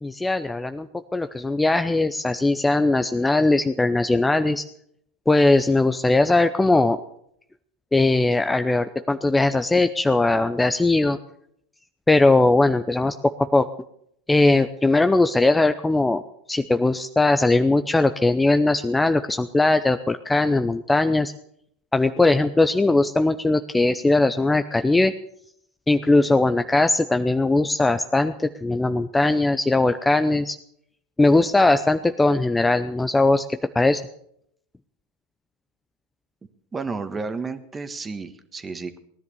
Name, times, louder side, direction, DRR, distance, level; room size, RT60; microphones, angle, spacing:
voice 1, 0.0-4.6 5.3-7.0 7.9-11.2 12.1-13.1 13.5-13.7 14.3-16.2 16.5-21.3 21.9-25.1 25.9-30.6 31.2-33.4 33.7-34.0, left 2 dB, 10° left, 9 dB, 0.7 m, -20 dB
voice 2, 36.7-39.0, right 4 dB, 20° right, 10 dB, 1.6 m, -32 dB
18.5 x 10.5 x 7.0 m, 0.72 s
hypercardioid pair, 90°, 0 cm